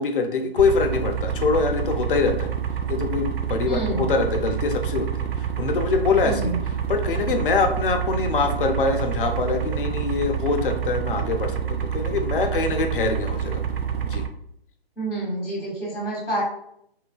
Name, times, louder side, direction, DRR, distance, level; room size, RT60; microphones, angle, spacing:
voice 1, 0.0-2.5 2.9-5.1 5.4-6.6 6.9-13.6 14.0-14.2, left 4 dB, 60° left, 5 dB, 0.5 m, -24 dB
sound 1, 0.6-14.3, right 8 dB, 80° right, 0.5 m, -27 dB
voice 2, 3.6-4.0 6.2-6.6 15.0-16.4, right 2 dB, 5° right, -20 dB, 0.3 m, -28 dB
3.1 x 2.3 x 2.3 m, 0.73 s
hypercardioid pair, 150°, 31 cm